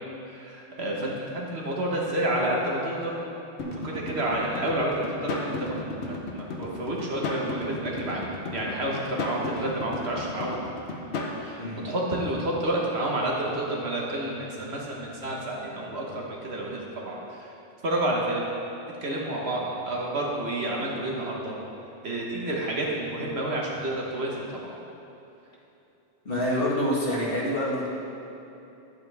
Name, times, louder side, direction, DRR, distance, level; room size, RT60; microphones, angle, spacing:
voice 1, 0.2-3.2 3.6-5.8 6.1-10.5 11.4-17.2 17.8-18.4 19.0-21.5 22.0-24.7 26.4-26.5, right 1 dB, 75° right, -3 dB, 1.6 m, -30 dB
sound 1, 3.6-11.4, left 2 dB, 85° left, 1.2 m, -34 dB
voice 2, 11.6-11.9 26.3-27.9, left 1 dB, 60° left, -5 dB, 1.8 m, -26 dB
10.5 x 8.3 x 3.5 m, 3.0 s
omnidirectional pair, 1.1 m